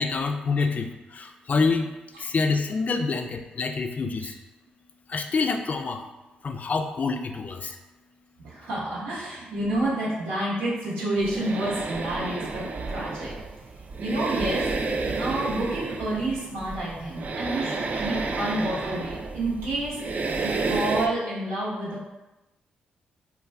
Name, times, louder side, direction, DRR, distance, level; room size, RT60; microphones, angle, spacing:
voice 1, 0.0-1.9 2.2-4.3 5.1-6.0 6.4-7.8, left 4 dB, 45° left, 5 dB, 0.3 m, -27 dB
voice 2, 8.4-13.3 14.0-20.0 20.4-22.0, right 1 dB, 85° right, -7 dB, 0.9 m, -29 dB
sound 1, 11.2-21.1, right 3 dB, 50° right, 0.3 m, -31 dB
2.3 x 2.3 x 3.2 m, 1.0 s
supercardioid pair, 50°, 4 cm